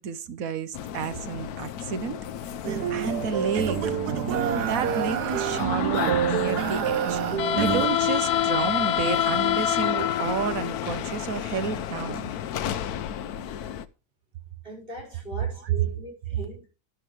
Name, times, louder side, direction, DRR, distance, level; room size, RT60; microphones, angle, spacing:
voice 1, 0.0-2.2 2.9-3.8 4.3-7.2 7.6-12.3, right 6 dB, 65° right, 1.3 m, -31 dB
sound 1, 0.7-13.8, left 10 dB, 70° left, 1.2 m, -29 dB
sound 2, 2.6-7.9, right 9 dB, 80° right, 1.4 m, -27 dB
voice 2, 14.6-16.8, equal, 35° right, 5.7 m, -40 dB
12.0 x 10.5 x 3.2 m
omnidirectional pair, 1.7 m